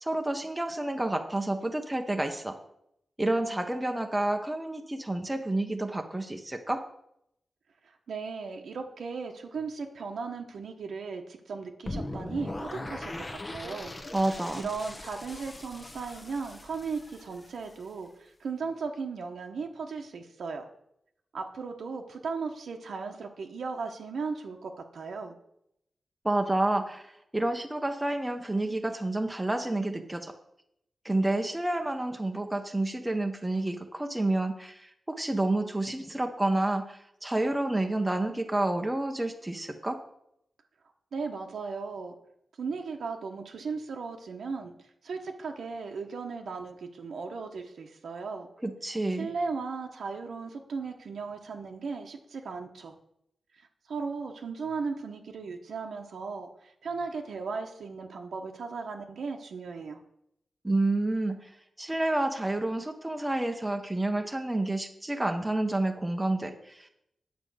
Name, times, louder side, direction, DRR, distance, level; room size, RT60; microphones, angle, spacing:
voice 1, 0.0-2.6 3.2-6.8 14.1-14.6 26.2-30.3 31.0-40.0 48.6-49.3 60.6-61.5 61.8-66.9, right 2 dB, 10° right, 5 dB, 0.8 m, -29 dB
voice 2, 8.1-13.9 14.5-20.7 21.3-25.4 41.1-42.1 42.6-44.7 45.0-48.5 49.2-52.9 53.5-60.0, right 4 dB, 80° right, 3 dB, 1.1 m, -36 dB
sound 1, 11.9-17.9, left 1 dB, 25° left, 0.8 m, -40 dB
9.5 x 5.2 x 7.8 m, 0.76 s
wide cardioid pair, 160°, 0 cm